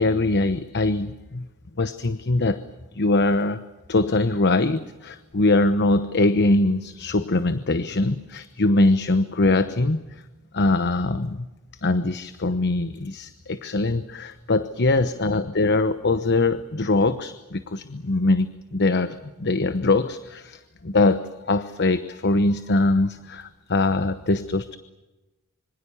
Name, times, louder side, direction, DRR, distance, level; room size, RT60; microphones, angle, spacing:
voice 1, 0.0-1.5 1.8-2.6 2.9-3.6 3.9-10.0 10.5-11.5 11.8-24.8, left 2 dB, 50° left, 12 dB, 1.0 m, -22 dB
26.5 x 25.0 x 7.1 m, 1.1 s
head